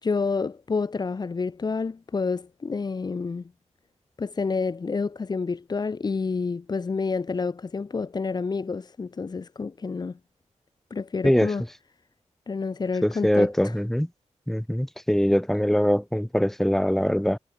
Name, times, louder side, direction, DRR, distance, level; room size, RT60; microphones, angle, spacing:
voice 1, 0.0-3.5 4.2-10.2 10.9-11.6 12.5-13.8, left 4 dB, 35° left, 3.7 m, -29 dB
voice 2, 13.0-14.1 14.5-17.4, equal, 5° left, 2.9 m, -22 dB
wide cardioid pair, 175°, 12 cm